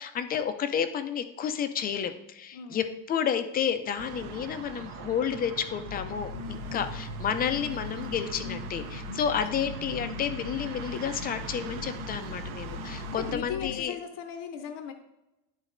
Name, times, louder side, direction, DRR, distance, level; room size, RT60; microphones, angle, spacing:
voice 1, 0.0-14.0, left 8 dB, 25° left, 9 dB, 0.4 m, -31 dB
voice 2, 2.5-2.9 6.7-6.9 9.5-9.7 13.2-14.9, left 7 dB, 50° left, 6 dB, 0.7 m, -38 dB
sound 1, 4.0-13.4, right 7 dB, 60° right, 0.8 m, -41 dB
sound 2, 5.8-13.8, left 7 dB, 85° left, 1.3 m, -40 dB
11.5 x 4.0 x 2.6 m, 0.94 s
cardioid pair, 150°, 42 cm